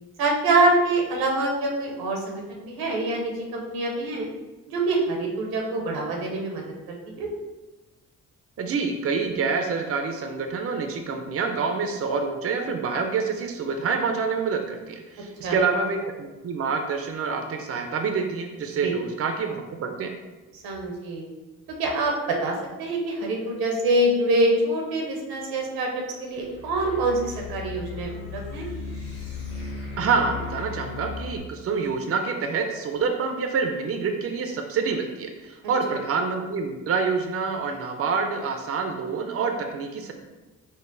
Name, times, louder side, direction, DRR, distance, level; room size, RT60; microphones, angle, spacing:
voice 1, 0.2-4.3 4.7-7.3 15.4-15.6 18.8-18.9 20.5-21.2 21.8-25.9 26.2-28.7, right 2 dB, 85° right, 1 dB, 0.8 m, -25 dB
voice 2, 8.6-20.1 30.0-40.1, right 5 dB, 40° right, 5 dB, 0.5 m, -27 dB
sound 1, 26.4-31.4, left 5 dB, 40° left, 1.3 m, -36 dB
3.8 x 2.0 x 3.8 m, 1.1 s
supercardioid pair, 60°, 35 cm